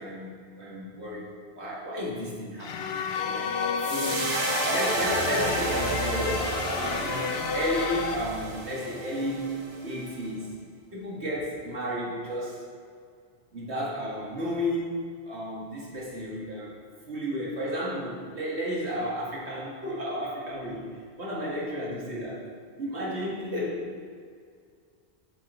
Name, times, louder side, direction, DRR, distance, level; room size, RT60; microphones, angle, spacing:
voice 1, 0.0-3.5 3.9-4.3 4.7-10.5 10.9-12.7 13.5-15.0 15.3-16.8 17.1-22.5 22.8-24.1, equal, 75° right, -4 dB, 2.2 m, -33 dB
sound 1, 2.6-8.2, left 6 dB, 75° left, 0.9 m, -31 dB
sound 2, 3.8-10.1, right 2 dB, 55° right, 1.2 m, -31 dB
7.5 x 6.8 x 4.4 m, 2.1 s
omnidirectional pair, 1.1 m